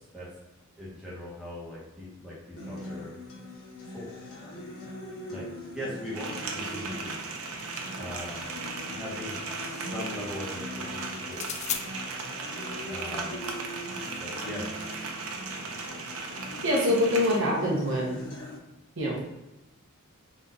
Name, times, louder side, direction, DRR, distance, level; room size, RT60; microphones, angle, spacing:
voice 1, 0.8-3.1 3.9-4.1 5.3-5.4 5.7-7.3 8.0-8.4 8.9-9.4 9.8-11.5 12.9-13.3 14.2-14.7, left 1 dB, 5° right, -8 dB, 1.3 m, -40 dB
Acoustic guitar, 2.6-18.6, left 1 dB, 85° left, 1.1 m, -42 dB
sound 1, 6.1-17.4, right 4 dB, 80° right, 0.7 m, -37 dB
sound 2, 7.6-8.5 11.3-11.8, left 9 dB, 35° left, 0.3 m, -37 dB
voice 2, 16.6-18.2 19.0-19.2, left 1 dB, 65° right, -4 dB, 1.2 m, -25 dB
4.2 x 2.9 x 3.9 m, 0.98 s
head